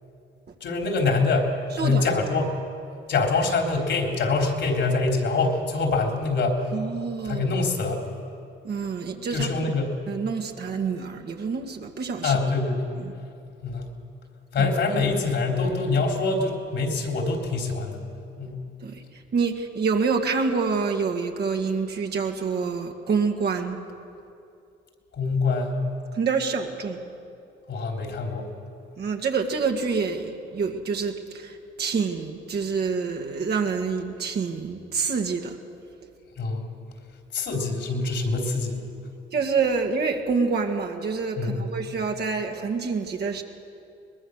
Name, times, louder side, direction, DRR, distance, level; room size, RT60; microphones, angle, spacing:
voice 1, 0.6-2.5 3.1-6.6 7.3-8.0 9.3-9.9 12.2-12.8 13.6-13.8 14.5-18.0 18.4-18.6 25.2-25.8 27.7-28.5 36.4-36.7 37.3-38.8 41.4-41.6, left 3 dB, 65° left, 2 dB, 3.7 m, -25 dB
voice 2, 1.7-2.1 6.7-7.4 8.6-9.5 10.1-12.4 13.0-13.1 14.6-14.7 18.8-23.8 26.1-27.0 29.0-35.6 39.3-43.4, right 5 dB, 55° right, 3 dB, 2.1 m, -27 dB
22.5 x 20.5 x 6.5 m, 2.6 s
cardioid pair, 90°, 20 cm